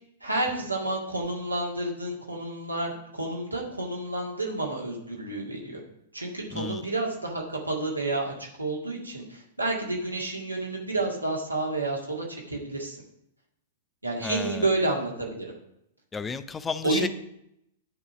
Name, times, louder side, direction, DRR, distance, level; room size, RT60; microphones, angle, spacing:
voice 1, 0.2-5.8 6.1-13.0 14.0-15.5 16.8-17.1, right 2 dB, 85° right, -1 dB, 1.9 m, -30 dB
voice 2, 6.5-6.8 14.2-14.6 16.1-17.1, left 5 dB, 15° left, 13 dB, 0.4 m, -32 dB
9.9 x 4.0 x 5.9 m, 0.78 s
figure-of-eight pair, 105°, 0 cm